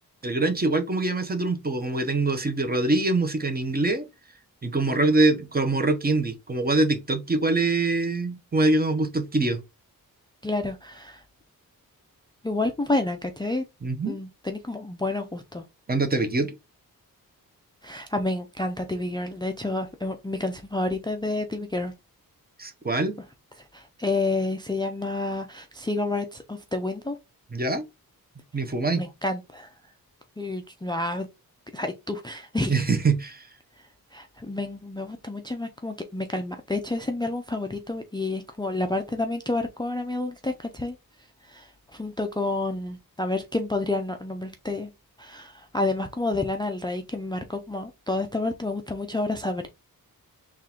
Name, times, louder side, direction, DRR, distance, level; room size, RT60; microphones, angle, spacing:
voice 1, 0.2-4.1 4.6-9.6 13.8-14.2 15.9-16.5 22.6-23.2 27.5-27.8 28.5-29.0 32.7-33.5, right 2 dB, 25° right, 0.8 m, -24 dB
voice 2, 10.4-11.2 12.4-13.6 14.1-15.6 17.8-21.9 23.7-27.2 29.0-29.7 30.4-31.3 31.7-32.9 34.1-41.0 41.5-44.9 45.2-49.7, left 2 dB, 10° left, 0.4 m, -29 dB
3.6 x 2.4 x 4.3 m
wide cardioid pair, 125°, 36 cm